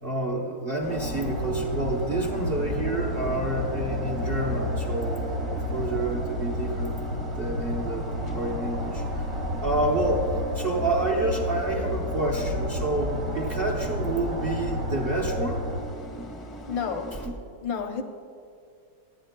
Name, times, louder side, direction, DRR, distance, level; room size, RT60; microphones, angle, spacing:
voice 1, 0.0-7.0 7.4-8.0 8.3-9.0 9.6-10.2 10.5-15.7 17.1-17.3, right 2 dB, 45° right, 0 dB, 0.8 m, -28 dB
sound 1, 0.8-17.3, equal, 30° left, 0.5 m, -39 dB
sound 2, 0.9-15.8, equal, 70° right, 1.9 m, -31 dB
voice 2, 16.7-17.2 17.6-18.0, left 6 dB, 85° left, 5 dB, 1.6 m, -30 dB
18.5 x 11.5 x 2.2 m, 2.3 s
omnidirectional pair, 2.0 m